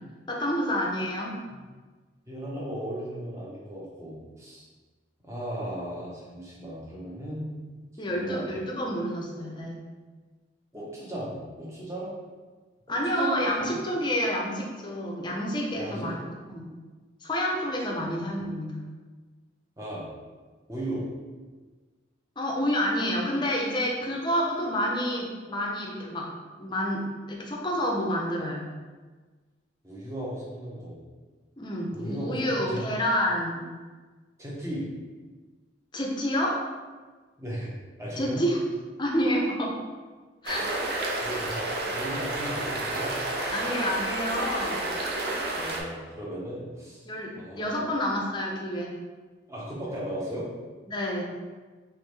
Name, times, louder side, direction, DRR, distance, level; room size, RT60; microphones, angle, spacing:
voice 1, 0.3-1.4 8.0-9.8 12.9-16.2 16.5-16.7 17.2-18.8 22.4-26.3 26.6-28.7 31.6-33.7 35.9-36.6 38.2-38.6 39.0-39.8 40.4-40.6 43.5-44.8 47.0-48.9 50.9-51.2, equal, 25° left, -1 dB, 0.5 m, -28 dB
voice 2, 2.3-4.7 5.2-7.6 8.1-8.4 10.7-12.1 12.9-13.7 15.7-16.1 18.0-18.1 19.8-20.0 20.7-21.1 29.8-31.0 31.9-32.8 34.4-34.9 37.4-38.4 41.2-43.1 45.5-47.0 47.3-47.9 49.5-50.5, right 1 dB, 15° right, -6 dB, 0.8 m, -36 dB
sound 1, 40.5-45.8, right 2 dB, 55° right, 0.5 m, -30 dB
3.5 x 3.1 x 3.3 m, 1.4 s
head